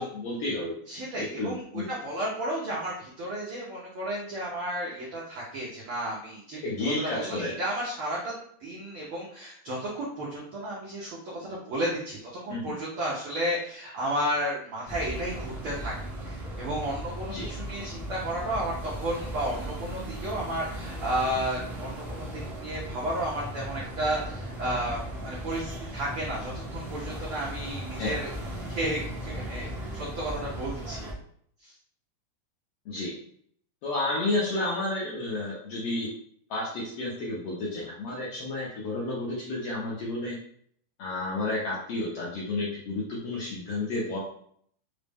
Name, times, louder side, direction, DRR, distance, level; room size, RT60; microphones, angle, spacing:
voice 1, 0.0-0.7 1.4-1.8 6.6-7.5 12.5-12.7 17.3-17.5 28.0-28.1 32.9-33.1 33.8-36.1 36.5-40.4 41.0-44.2, left 2 dB, 75° left, -5 dB, 1.4 m, -31 dB
voice 2, 0.9-8.3 8.6-15.9 16.2-28.3 28.7-31.1 31.6-31.7, right 1 dB, 90° right, -5 dB, 1.1 m, -33 dB
sound 1, 14.9-31.1, equal, 55° right, 0.4 m, -37 dB
4.9 x 2.1 x 3.4 m, 0.63 s
omnidirectional pair, 3.5 m